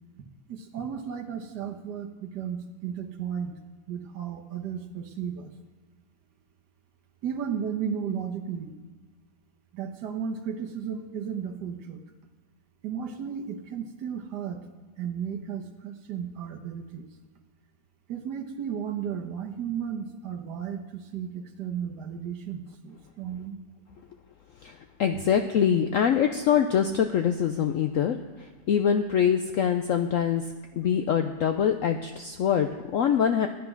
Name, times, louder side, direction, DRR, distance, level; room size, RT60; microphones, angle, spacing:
voice 1, 0.5-3.6 3.9-5.5 7.2-8.7 9.7-12.0 12.8-14.6 15.0-17.1 18.1-23.6, right 7 dB, 65° right, 4 dB, 1.6 m, -34 dB
voice 2, 24.6-30.4 30.7-33.5, left 8 dB, 80° left, 7 dB, 0.7 m, -24 dB
10.5 x 10.0 x 5.9 m, 1.3 s
omnidirectional pair, 2.0 m